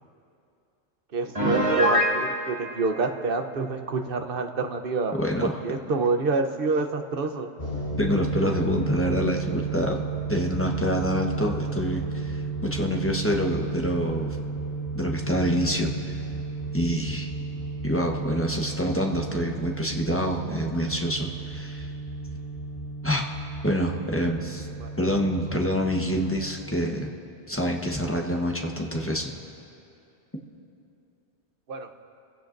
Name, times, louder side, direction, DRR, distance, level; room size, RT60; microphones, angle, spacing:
voice 1, 1.1-5.2 5.6-7.5 24.8-24.9 31.7-32.0, right 3 dB, 55° right, 5 dB, 1.0 m, -27 dB
Piano, 1.3-2.2, equal, 30° right, 1.8 m, -22 dB
voice 2, 5.2-5.5 8.0-10.0 10.3-14.4 14.9-15.9 16.7-17.3 17.8-21.9 23.0-23.2 23.6-24.7 25.0-27.1 27.5-29.3, equal, 10° left, 0 dB, 1.0 m, -26 dB
sound 1, 7.6-26.6, right 3 dB, 35° left, 4.2 m, -33 dB
25.5 x 16.0 x 2.6 m, 2.7 s
omnidirectional pair, 1.2 m